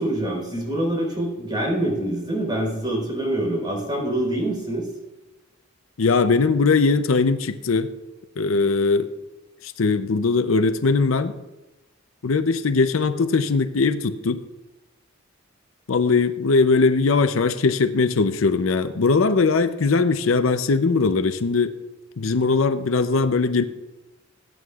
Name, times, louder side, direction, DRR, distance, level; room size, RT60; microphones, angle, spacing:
voice 1, 0.0-4.9, right 1 dB, 20° right, -1 dB, 4.2 m, -25 dB
voice 2, 6.0-7.9 8.4-9.1 9.6-11.3 12.2-14.4 15.9-21.7 22.2-23.6, left 4 dB, 75° left, 10 dB, 0.6 m, -20 dB
20.5 x 9.3 x 2.4 m, 1.0 s
head